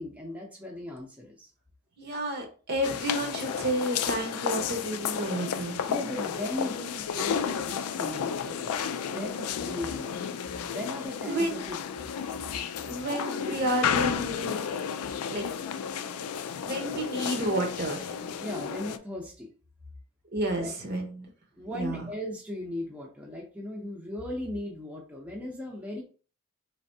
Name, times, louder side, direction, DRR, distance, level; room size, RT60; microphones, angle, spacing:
voice 1, 0.0-1.5 5.9-10.2 10.7-11.8 18.4-19.5 20.6-20.7 21.6-26.0, left 1 dB, 5° right, -2 dB, 0.6 m, -37 dB
voice 2, 2.0-5.8 11.2-11.6 12.9-14.7 15.3-15.4 16.7-18.1 20.3-21.3 21.7-22.0, right 1 dB, 45° right, 3 dB, 0.9 m, -31 dB
sound 1, 2.8-19.0, left 7 dB, 90° left, 0.4 m, -32 dB
3.9 x 3.3 x 2.7 m, 0.37 s
head